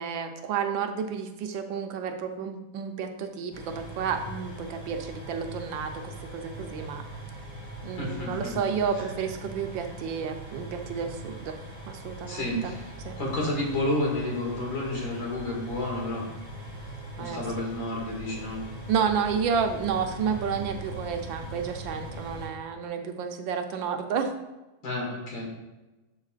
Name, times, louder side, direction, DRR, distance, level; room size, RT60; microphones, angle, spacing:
voice 1, 0.0-7.0 7.8-11.6 11.9-12.7 13.0-13.2 17.2-17.4 18.9-24.3, right 6 dB, 75° right, 5 dB, 1.4 m, -31 dB
sound 1, 3.5-22.5, right 1 dB, 20° left, 2.2 m, -41 dB
voice 2, 8.0-8.5 12.3-12.8 13.2-16.3 17.2-18.6 24.8-25.5, left 2 dB, 75° left, -3 dB, 2.8 m, -30 dB
11.5 x 5.6 x 2.4 m, 1.1 s
omnidirectional pair, 2.1 m